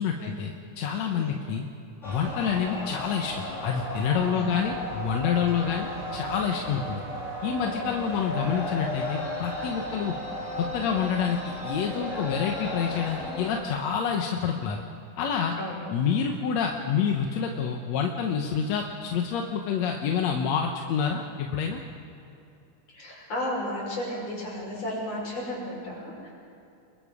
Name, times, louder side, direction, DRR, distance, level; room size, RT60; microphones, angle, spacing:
voice 1, 0.0-1.6 2.0-7.0 7.4-10.1 10.6-11.4 11.6-14.8 15.2-15.5 15.9-21.8, left 7 dB, 65° left, 2 dB, 2.1 m, -28 dB
sound 1, 2.0-13.6, left 1 dB, 20° left, 3.9 m, -35 dB
voice 2, 15.6-16.0 17.5-17.7 22.9-26.3, left 1 dB, 50° left, -3 dB, 7.0 m, -34 dB
29.0 x 22.5 x 5.0 m, 2.7 s
omnidirectional pair, 3.6 m